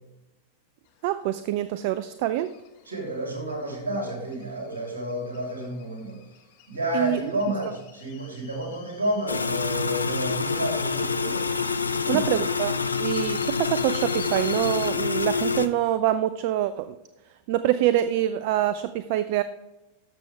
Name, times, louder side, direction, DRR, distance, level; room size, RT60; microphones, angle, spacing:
sound 1, 0.9-14.9, left 10 dB, 50° left, 1.1 m, -49 dB
voice 1, 1.0-2.5 6.9-7.3 12.1-12.7 13.0-17.0 17.5-19.4, right 12 dB, 50° right, 13 dB, 0.3 m, -25 dB
voice 2, 2.8-6.2 6.7-11.4 12.0-12.2, right 1 dB, 70° right, 0 dB, 3.0 m, -30 dB
sound 2, 9.3-15.7, left 5 dB, 80° left, 0.5 m, -27 dB
12.0 x 6.9 x 3.3 m, 1.0 s
figure-of-eight pair, 90°, 0 cm